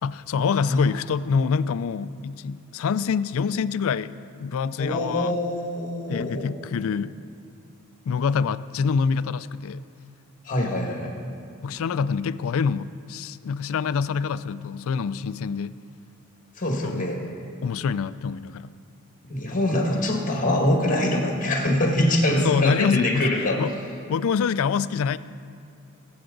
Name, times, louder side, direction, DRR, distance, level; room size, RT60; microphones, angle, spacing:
voice 1, 0.0-5.4 6.1-7.2 8.1-9.8 11.6-15.8 16.8-17.1 17.6-18.7 19.9-20.0 22.4-23.3 23.6-23.7 24.1-25.2, left 6 dB, 70° left, 16 dB, 0.3 m, -26 dB
voice 2, 0.6-0.9 4.8-6.5 10.4-11.1 16.6-17.2 19.3-23.6, left 1 dB, 40° left, 1 dB, 1.8 m, -24 dB
21.0 x 7.8 x 3.9 m, 2.3 s
head